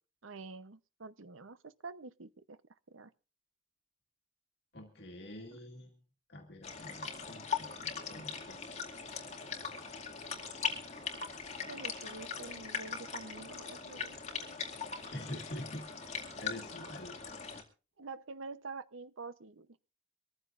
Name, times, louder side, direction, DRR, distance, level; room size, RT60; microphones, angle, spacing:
voice 1, 0.2-2.6 2.9-3.1 8.2-8.4 11.7-14.5 18.0-19.7, right 4 dB, 85° right, 13 dB, 0.9 m, -47 dB
voice 2, 4.7-6.0 6.3-8.8 15.1-16.1 16.4-17.2, left 1 dB, 55° left, 2 dB, 2.1 m, -46 dB
sound 1, 6.6-17.6, left 6 dB, 35° left, 2.3 m, -40 dB
24.5 x 14.5 x 2.6 m, 0.32 s
head